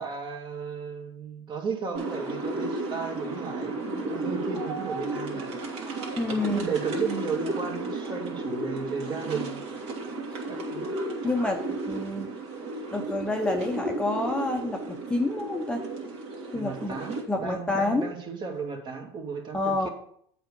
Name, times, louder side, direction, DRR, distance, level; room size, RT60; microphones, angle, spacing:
voice 1, 0.0-5.5 6.3-9.6 10.5-10.9 16.5-19.9, right 5 dB, 35° right, 3 dB, 2.0 m, -34 dB
ambiente.plaza.de.america, 1.9-17.2, right 2 dB, 55° right, 2.6 m, -34 dB
voice 2, 6.2-6.7 11.2-12.3 12.9-15.8 16.5-17.0 17.3-18.1 19.5-19.9, left 2 dB, 5° left, 3 dB, 0.9 m, -28 dB
7.8 x 4.9 x 6.9 m, 0.66 s
supercardioid pair, 105°, 13 cm